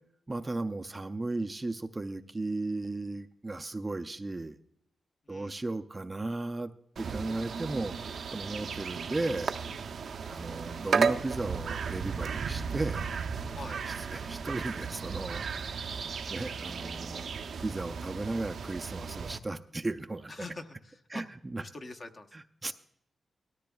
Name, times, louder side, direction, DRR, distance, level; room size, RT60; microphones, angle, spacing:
voice 1, 0.3-4.6 5.3-6.7 7.0-9.5 10.3-13.1 13.9-15.4 15.8-15.9 16.3-17.3 17.6-20.5 21.1-21.6 22.3-22.7, right 2 dB, 20° right, 7 dB, 0.4 m, -35 dB
voice 2, 5.3-5.6 13.5-13.8 20.3-21.2 21.6-22.3, left 2 dB, 40° left, 5 dB, 0.9 m, -44 dB
sound 1, 7.0-19.4, right 6 dB, 70° right, 0.6 m, -34 dB
18.5 x 13.5 x 2.3 m, 0.72 s
wide cardioid pair, 120°, 0 cm